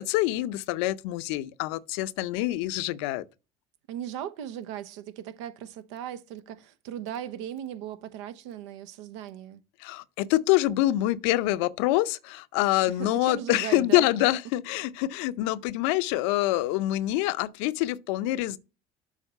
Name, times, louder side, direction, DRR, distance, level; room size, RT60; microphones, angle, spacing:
voice 1, 0.0-3.2 9.8-18.6, left 16 dB, 80° left, 0.5 m, -26 dB
voice 2, 3.9-9.6 13.0-14.1, right 10 dB, 85° right, 0.9 m, -37 dB
7.3 x 4.3 x 5.5 m
supercardioid pair, 95°, 15 cm